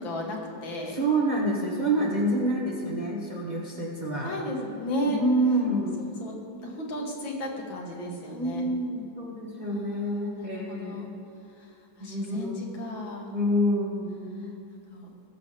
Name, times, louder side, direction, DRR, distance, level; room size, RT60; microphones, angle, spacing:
voice 1, 0.0-1.0 4.2-5.2 6.2-6.3 6.6-8.7 9.6-11.1 12.0-13.3 14.9-15.1, left 1 dB, 75° left, -1 dB, 2.3 m, -34 dB
voice 2, 0.9-4.3 5.1-6.0 8.3-11.1 12.0-12.9 13.3-14.5, right 1 dB, 25° right, -4 dB, 1.2 m, -28 dB
19.5 x 7.3 x 3.3 m, 2.6 s
omnidirectional pair, 2.1 m